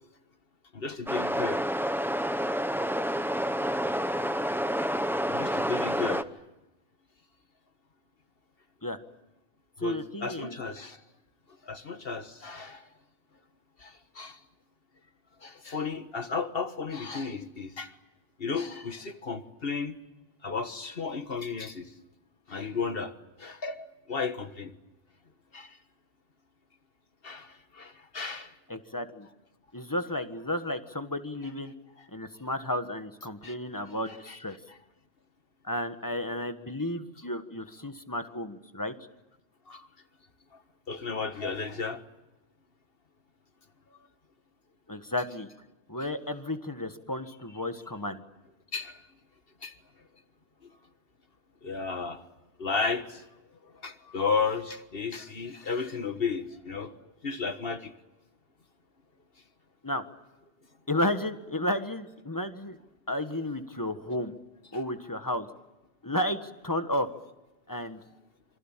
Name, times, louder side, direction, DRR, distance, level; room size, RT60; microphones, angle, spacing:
voice 1, 0.7-1.6 5.3-6.3 9.8-11.0 11.6-12.9 13.8-14.4 15.4-17.9 18.4-19.9 20.4-21.9 22.5-23.1 23.4-24.7 25.5-25.8 27.2-28.5 33.4-33.6 34.1-34.4 34.7-34.8 39.7-39.9 40.9-42.0 48.7-49.0 49.6-49.7 51.6-52.2 52.6-53.2 53.6-57.9, left 5 dB, 60° left, 8 dB, 1.7 m, -34 dB
sound 1, 1.1-6.2, equal, ahead, 0.7 m, -29 dB
voice 2, 9.8-10.6 28.7-29.3 29.7-31.7 32.1-34.6 35.6-38.9 44.9-45.5 45.9-48.2 59.8-60.0 60.9-62.8 63.1-64.3 64.7-65.5 66.0-67.1 67.7-68.0, left 1 dB, 20° left, 8 dB, 1.6 m, -32 dB
27.5 x 24.5 x 7.5 m, 1.0 s
omnidirectional pair, 1.1 m